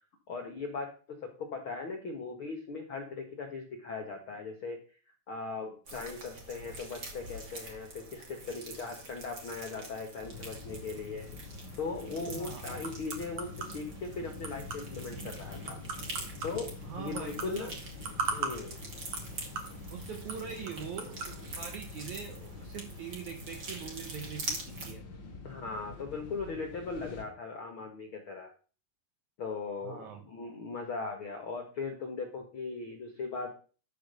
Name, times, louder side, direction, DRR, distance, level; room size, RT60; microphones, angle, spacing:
voice 1, 0.3-4.8 5.3-11.3 11.8-15.8 16.4-16.7 17.0-17.7 18.3-18.8 25.4-28.5 29.4-33.5, left 4 dB, 75° left, 3 dB, 1.2 m, -39 dB
sound 1, 5.9-24.9, right 2 dB, 35° right, 2.1 m, -45 dB
sound 2, 10.2-27.2, left 3 dB, 50° left, 1.4 m, -46 dB
sound 3, 11.9-21.4, right 5 dB, 50° right, 2.1 m, -42 dB
voice 2, 12.3-12.7 16.9-17.7 19.9-25.0 29.8-30.2, right 7 dB, 70° right, 4 dB, 1.8 m, -42 dB
12.5 x 4.6 x 6.8 m, 0.38 s
omnidirectional pair, 4.9 m